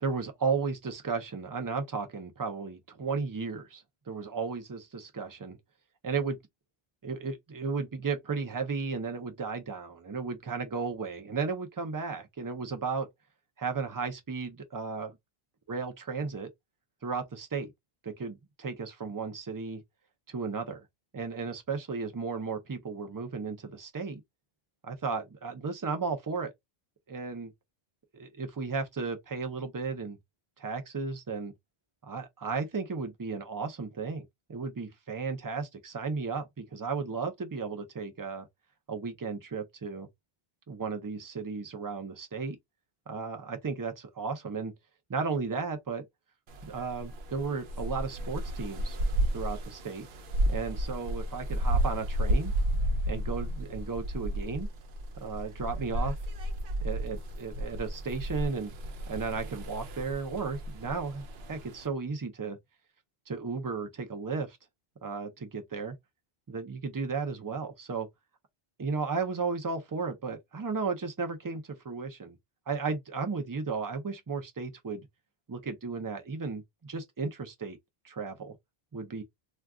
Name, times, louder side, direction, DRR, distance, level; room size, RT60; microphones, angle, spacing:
voice 1, 0.0-5.6 6.0-6.4 7.0-13.1 13.6-15.2 15.7-16.5 17.0-17.7 18.0-19.8 20.3-20.8 21.1-24.2 24.8-26.5 27.1-27.5 28.1-30.2 30.6-31.5 32.0-38.5 38.9-40.1 40.7-42.6 43.1-44.7 45.1-46.0 46.6-49.0 49.3-50.1 50.5-52.5 53.1-54.7 55.2-56.2 56.8-58.7 59.1-62.6 63.3-64.6 65.0-66.0 66.5-68.1 68.8-72.4 72.7-75.1 75.5-77.8 78.0-78.6 78.9-79.2, right 4 dB, 30° right, 0.4 m, -34 dB
sound 1, 46.5-61.9, right 1 dB, 75° right, 0.8 m, -32 dB
2.3 x 2.3 x 3.5 m
omnidirectional pair, 1.0 m